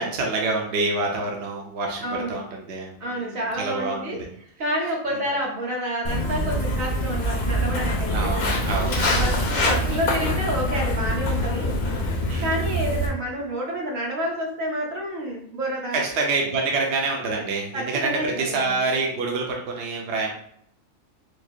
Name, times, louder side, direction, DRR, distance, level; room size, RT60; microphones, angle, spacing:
voice 1, 0.0-4.3 5.1-5.2 8.1-9.3 12.3-12.5 15.9-20.3, right 3 dB, 60° right, 0 dB, 1.0 m, -27 dB
voice 2, 2.0-2.4 3.0-4.2 4.6-8.3 8.9-11.7 12.4-16.0 17.7-18.8, equal, 85° right, -1 dB, 1.5 m, -29 dB
Walk footsteps, 6.1-13.1, equal, 45° left, 0.7 m, -24 dB
4.8 x 2.0 x 4.4 m, 0.67 s
omnidirectional pair, 1.4 m